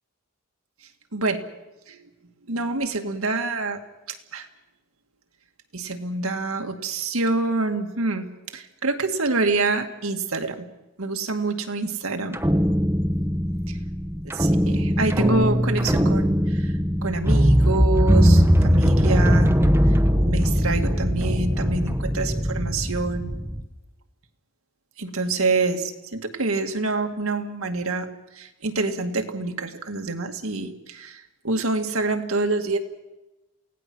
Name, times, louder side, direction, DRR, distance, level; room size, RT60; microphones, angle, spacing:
voice 1, 1.1-1.5 1.9-2.1 2.5-3.8 4.1-4.5 5.7-8.3 8.5-10.7 11.0-12.4 13.7-13.8 14.2-19.6 19.8-19.9 20.2-23.3 25.0-32.8, right 3 dB, 80° right, 5 dB, 2.0 m, -27 dB
sound 1, 12.3-23.6, equal, 10° right, 0.9 m, -20 dB
28.5 x 17.5 x 6.2 m, 1.0 s
head